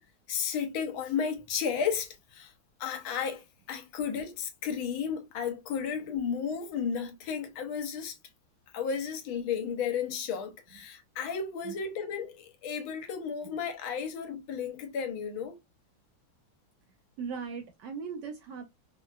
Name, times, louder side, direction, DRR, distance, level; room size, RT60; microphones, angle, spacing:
voice 1, 0.3-2.5 2.8-8.2 8.7-15.6, left 7 dB, 75° left, 1.5 m, -33 dB
voice 2, 17.2-18.7, right 6 dB, 70° right, 1.1 m, -39 dB
4.4 x 2.2 x 2.3 m
omnidirectional pair, 2.3 m